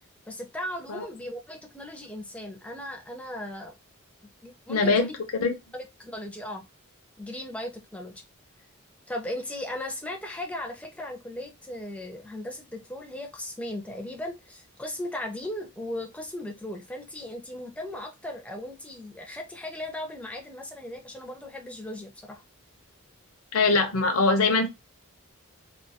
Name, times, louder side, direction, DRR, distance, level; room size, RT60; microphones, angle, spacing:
voice 1, 0.3-3.7 4.4-5.1 5.7-6.6 7.2-8.1 9.1-22.4, left 1 dB, 5° left, 0.4 m, -37 dB
voice 2, 4.7-5.5 23.5-24.7, left 3 dB, 75° left, 0.6 m, -23 dB
2.2 x 2.2 x 2.7 m
head